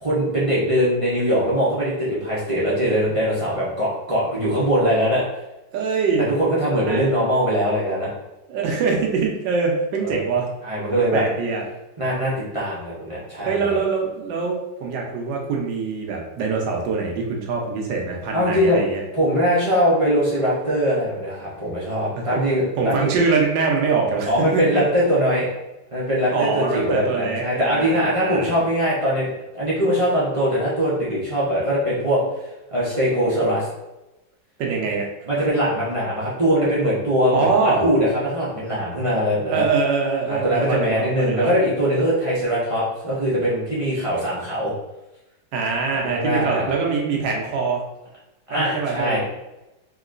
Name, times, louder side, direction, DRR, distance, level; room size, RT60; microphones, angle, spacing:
voice 1, 0.0-5.2 6.2-8.1 10.0-10.2 10.6-11.2 12.0-13.8 18.3-18.8 19.1-23.1 24.3-25.5 25.9-32.2 32.7-33.7 35.3-39.6 40.3-44.7 46.1-46.7 48.5-49.2, equal, 35° right, -8 dB, 0.5 m, -21 dB
voice 2, 5.7-6.2 6.9-7.1 8.5-10.5 11.1-11.6 13.5-19.0 22.2-22.3 22.8-24.8 26.3-28.6 34.6-35.1 37.3-37.8 39.5-41.5 45.5-47.8 48.5-49.2, right 4 dB, 90° right, 0 dB, 1.4 m, -23 dB
3.9 x 2.9 x 2.5 m, 0.98 s
omnidirectional pair, 1.9 m